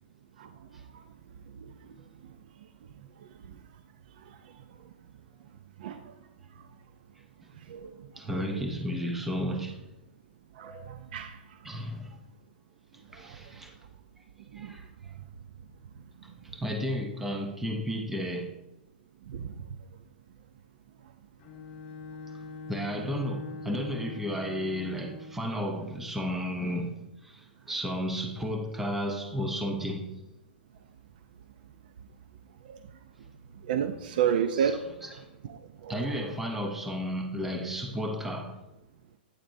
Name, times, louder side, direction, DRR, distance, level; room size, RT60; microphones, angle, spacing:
voice 1, 8.1-9.9 11.6-12.2 13.1-13.8 14.5-15.1 16.2-18.5 22.7-30.1 34.6-34.7 35.0-35.3 35.9-38.6, equal, 5° right, 0.6 m, -33 dB
voice 2, 10.6-11.4 14.5-14.7 19.3-19.5 32.7-32.8 33.7-34.8 35.5-36.5, right 8 dB, 55° right, 0.5 m, -30 dB
Bowed string instrument, 21.4-25.5, left 3 dB, 30° left, 1.2 m, -42 dB
9.3 x 7.2 x 2.6 m
hypercardioid pair, 160°, 6 cm